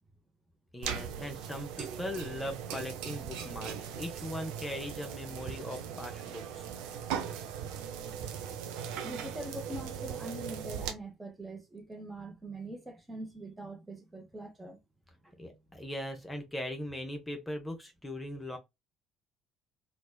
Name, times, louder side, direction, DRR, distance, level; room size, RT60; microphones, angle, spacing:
voice 1, 0.7-6.7 15.4-18.6, left 1 dB, 15° left, 0.7 m, -39 dB
sound 1, 0.8-10.9, right 8 dB, 65° right, 0.5 m, -39 dB
voice 2, 9.0-14.8 15.2-15.5, right 1 dB, 15° right, 0.8 m, -43 dB
3.1 x 2.2 x 2.2 m
figure-of-eight pair, 55°, 0 cm